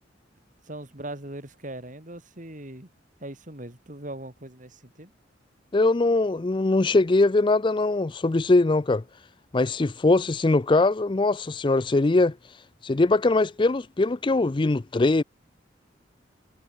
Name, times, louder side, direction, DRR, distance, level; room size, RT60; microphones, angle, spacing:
voice 1, 0.6-2.9 3.2-5.1, right 1 dB, 40° right, 4.1 m, -40 dB
voice 2, 5.7-9.0 9.5-12.4 12.8-15.2, left 2 dB, 25° left, 0.4 m, -21 dB
head